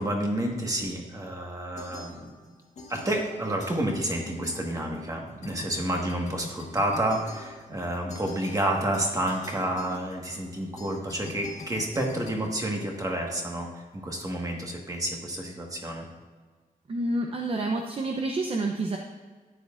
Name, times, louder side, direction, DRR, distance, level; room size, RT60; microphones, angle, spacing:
voice 1, 0.0-2.3 2.9-16.1, right 1 dB, 25° right, 1 dB, 1.5 m, -30 dB
sound 1, 1.8-2.5 2.8-5.1 5.4-13.3, left 2 dB, 55° left, 1.5 m, -45 dB
voice 2, 16.9-19.0, right 2 dB, 40° right, 2 dB, 0.7 m, -28 dB
13.0 x 9.6 x 2.5 m, 1.4 s
wide cardioid pair, 170°, 15 cm